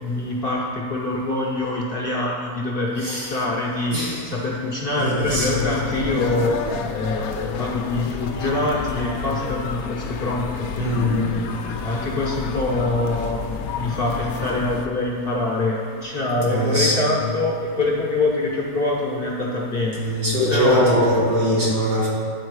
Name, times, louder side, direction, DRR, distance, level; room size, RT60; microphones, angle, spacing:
voice 1, 0.0-4.0 4.3-6.6 6.9-11.2 11.8-13.4 13.8-20.0 20.5-21.1, left 2 dB, 45° left, -3 dB, 0.7 m, -24 dB
voice 2, 3.0-3.3 3.9-4.2 4.9-5.7 10.8-11.4 16.4-17.1 19.9-22.1, equal, 70° right, -8 dB, 2.7 m, -22 dB
sound 1, 5.2-14.9, left 5 dB, 70° left, 1.0 m, -30 dB
9.6 x 4.4 x 4.7 m, 2.3 s
omnidirectional pair, 1.7 m